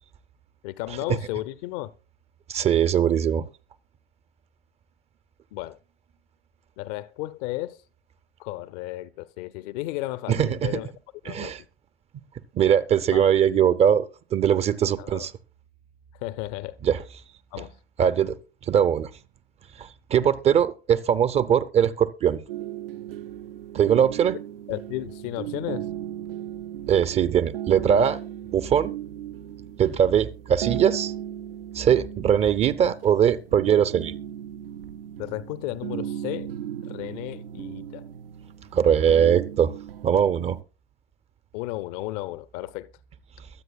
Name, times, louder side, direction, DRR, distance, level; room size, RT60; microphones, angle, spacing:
voice 1, 0.6-1.9 5.5-5.8 6.8-7.8 8.4-10.9 11.2-11.5 13.1-13.3 15.0-15.3 16.2-16.8 17.5-17.8 24.7-25.9 35.2-36.5 36.8-38.1 41.5-42.9, left 17 dB, 40° left, 0.6 m, -34 dB
voice 2, 2.5-3.4 10.3-10.7 11.3-11.6 12.5-14.1 14.3-15.3 16.8-17.0 18.0-18.3 18.7-19.1 19.8-22.4 23.7-24.4 26.9-28.2 28.5-28.9 29.8-31.1 31.7-34.1 38.7-39.7 40.0-40.6, right 8 dB, 20° right, 0.5 m, -21 dB
sound 1, 22.5-40.6, right 11 dB, 65° right, 0.6 m, -36 dB
22.5 x 7.9 x 2.3 m
figure-of-eight pair, 90°, 31 cm